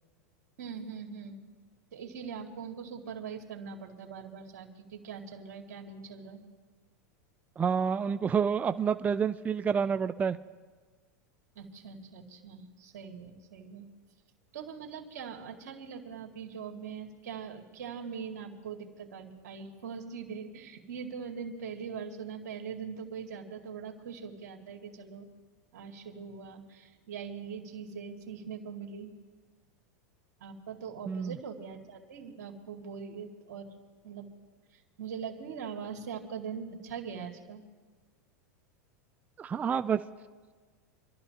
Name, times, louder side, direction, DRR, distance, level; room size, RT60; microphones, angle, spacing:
voice 1, 0.6-1.4 1.9-6.4 11.6-13.9 14.5-25.3 25.7-29.1 30.4-33.7 34.0-34.3 34.7-37.6, right 6 dB, 80° right, 1 dB, 2.2 m, -42 dB
voice 2, 7.6-10.4 31.1-31.4 39.4-40.0, right 6 dB, 15° right, 10 dB, 0.3 m, -28 dB
27.0 x 12.5 x 2.9 m, 1.4 s
hypercardioid pair, 115°, 9 cm